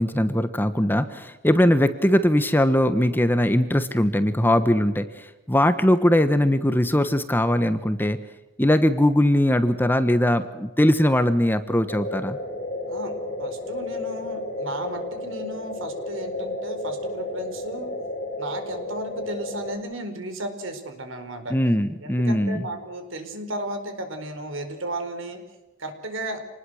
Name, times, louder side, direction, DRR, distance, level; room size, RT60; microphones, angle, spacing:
voice 1, 0.0-8.2 8.6-12.4 21.5-22.6, left 1 dB, 10° left, 10 dB, 1.2 m, -20 dB
sound 1, 11.9-19.8, left 2 dB, 40° left, 4.9 m, -32 dB
voice 2, 13.4-17.9 18.4-21.6 22.0-25.4 25.8-26.4, right 1 dB, 70° right, 7 dB, 4.8 m, -34 dB
27.5 x 20.0 x 6.5 m, 1.1 s
head